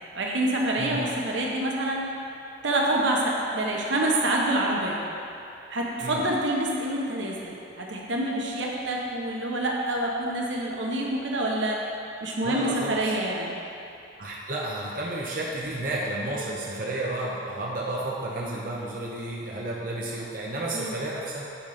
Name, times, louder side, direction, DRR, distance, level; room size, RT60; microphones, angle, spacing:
voice 1, 0.1-2.1 2.6-5.0 5.7-11.8 12.2-13.6 20.7-20.9, right 1 dB, 80° right, -2 dB, 1.0 m, -27 dB
voice 2, 0.8-1.1 6.0-6.3 12.4-13.1 14.2-21.5, right 1 dB, 50° right, -4 dB, 0.8 m, -32 dB
8.9 x 3.9 x 5.0 m, 2.7 s
head